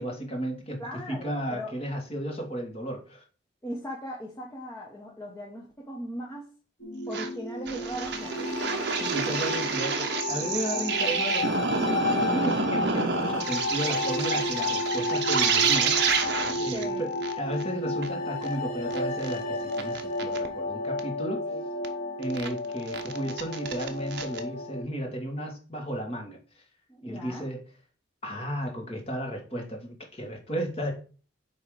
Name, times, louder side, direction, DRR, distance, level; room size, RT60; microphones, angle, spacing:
voice 1, 0.0-3.2 9.0-16.3 16.6-17.1 17.4-21.5 22.2-26.4 27.0-27.6 28.2-30.9, equal, 30° left, 1 dB, 1.7 m, -34 dB
voice 2, 0.8-1.7 3.6-6.5 7.1-8.8 16.7-17.0 21.5-21.6 26.9-27.5, equal, 15° left, -4 dB, 1.0 m, -38 dB
sound 1, 6.8-24.8, left 2 dB, 75° left, 2.1 m, -32 dB
sound 2, 7.1-7.3 7.7-16.8 17.2-17.3 17.6-17.7 18.0-18.1 18.4-18.5 18.9-19.3 19.8-20.5 21.0-21.1 21.8-21.9 22.2-22.5 22.9-24.4, right 5 dB, 55° right, 0.9 m, -28 dB
8.8 x 3.2 x 4.8 m, 0.38 s
head